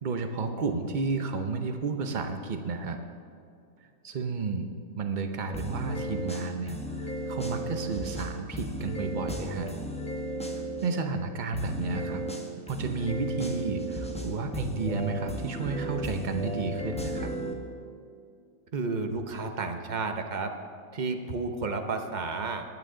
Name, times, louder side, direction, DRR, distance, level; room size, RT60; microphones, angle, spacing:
voice 1, 0.0-3.0 4.0-4.7 5.0-9.7 10.8-12.2 12.7-17.3, right 4 dB, 85° right, 6 dB, 0.4 m, -32 dB
sound 1, 5.5-10.9 11.5-17.5, equal, 5° left, 0.7 m, -34 dB
voice 2, 18.7-20.5 20.9-22.6, right 4 dB, 45° right, 5 dB, 0.6 m, -31 dB
20.0 x 9.0 x 3.8 m, 2.4 s
omnidirectional pair, 1.9 m